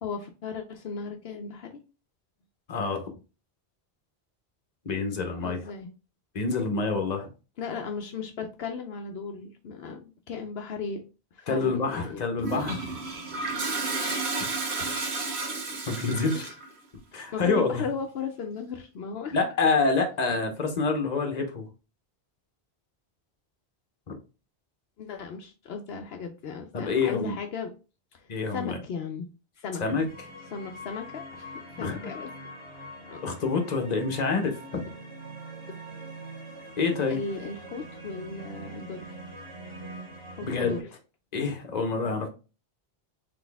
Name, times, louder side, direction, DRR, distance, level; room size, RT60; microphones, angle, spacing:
voice 1, 0.0-1.8 5.4-5.9 7.6-11.0 11.3-12.2 14.8-15.1 15.7-15.8 16.2-16.5 17.3-19.4 25.0-27.7 28.1-29.3 29.6-29.8 30.5-32.3 32.7-33.2 37.1-39.2 40.3-40.9, left 5 dB, 75° left, 5 dB, 0.8 m, -36 dB
voice 2, 2.7-3.1 4.8-5.6 6.3-7.3 11.5-12.9 14.4-14.5 15.9-16.5 17.1-17.8 19.3-21.6 26.7-27.4 28.3-28.7 29.8-30.0 31.8-32.1 33.2-34.8 36.8-37.2 40.4-40.8 41.3-42.3, left 4 dB, 45° left, 4 dB, 1.0 m, -27 dB
Toilet flush, 12.4-16.7, right 3 dB, 85° right, 1.3 m, -32 dB
sound 1, 30.1-40.8, right 1 dB, 30° right, 2.1 m, -43 dB
4.1 x 3.3 x 3.4 m, 0.32 s
omnidirectional pair, 1.1 m